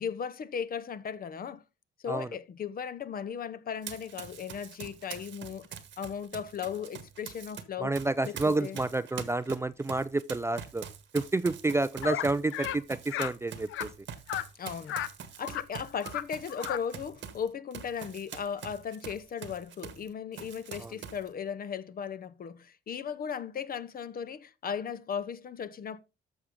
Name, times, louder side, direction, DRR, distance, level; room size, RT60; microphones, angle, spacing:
voice 1, 0.0-1.6 2.0-8.0 8.2-8.8 14.5-15.0 15.4-26.0, left 7 dB, 50° left, 0.7 m, -37 dB
Run, 3.8-7.6 7.9-20.1 20.3-21.3, right 8 dB, 70° right, 1.4 m, -44 dB
voice 2, 7.8-10.8 11.1-13.9 20.8-20.9, right 2 dB, 15° right, 0.3 m, -29 dB
sound 1, 12.0-12.3 12.5-12.8 13.1-13.3 13.7-13.9 14.3-14.5 14.9-15.1 15.4-15.6 15.9-16.2 16.5-16.8, left 12 dB, 80° left, 0.6 m, -34 dB
13.5 x 4.8 x 3.6 m
cardioid pair, 90°, 20 cm